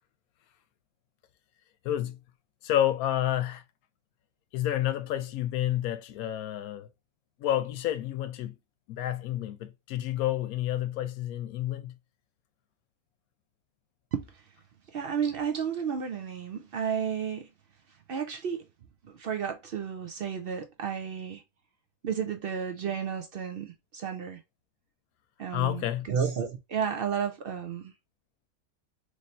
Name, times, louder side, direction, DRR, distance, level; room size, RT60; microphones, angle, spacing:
voice 1, 1.8-2.2 2.6-3.6 4.5-6.9 7.4-8.5 8.9-12.0 25.5-26.1, left 12 dB, 85° left, 1.1 m, -29 dB
voice 2, 14.1-14.4 14.9-17.5 18.1-18.7 19.0-21.4 22.0-24.4 25.4-27.9, right 7 dB, 70° right, 0.5 m, -32 dB
3.2 x 2.6 x 4.2 m
omnidirectional pair, 1.5 m